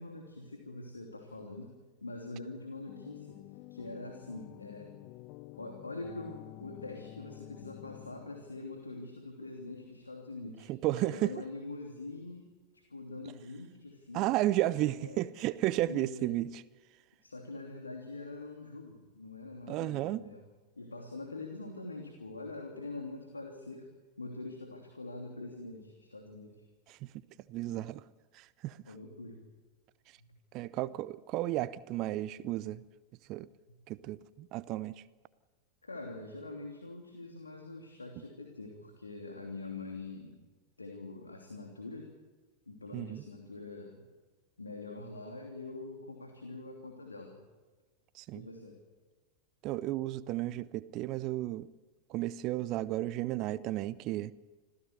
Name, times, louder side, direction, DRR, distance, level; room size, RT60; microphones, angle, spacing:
voice 1, 0.0-1.7 2.0-3.4 3.7-4.9 5.6-10.7 10.9-12.5 12.7-14.4 14.8-15.3 15.9-16.3 17.2-20.4 20.7-23.9 24.2-26.6 28.9-29.4 30.2-30.3 35.8-40.4 40.8-42.1 42.7-44.0 44.6-47.4 48.3-48.7, left 2 dB, 80° left, 2 dB, 3.0 m, -44 dB
sound 1, 2.9-8.7, left 19 dB, 40° left, 0.6 m, -50 dB
voice 2, 10.7-11.3 14.1-16.6 19.7-20.2 26.9-27.0 27.5-28.0 28.3-28.8 30.5-32.8 33.3-33.5 33.9-34.9 42.9-43.2 48.1-48.5 49.6-51.7 52.1-54.3, right 15 dB, 40° right, 18 dB, 0.7 m, -33 dB
26.5 x 15.5 x 8.0 m, 1.3 s
figure-of-eight pair, 90°, 0 cm